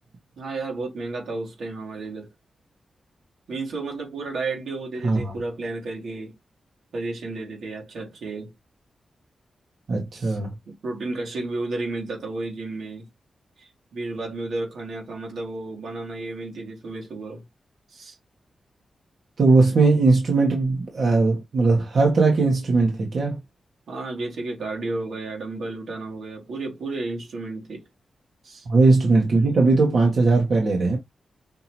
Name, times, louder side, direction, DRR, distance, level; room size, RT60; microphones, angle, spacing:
voice 1, 0.4-2.3 3.5-6.4 6.9-8.5 10.1-10.4 10.7-13.1 13.6-17.4 17.9-18.2 23.9-27.9 28.4-28.7, right 3 dB, 85° right, 2.0 m, -32 dB
voice 2, 9.9-10.5 19.4-23.4 28.7-31.0, right 3 dB, 65° right, 1.4 m, -19 dB
5.7 x 2.9 x 2.9 m
cardioid pair, 75°, 0 cm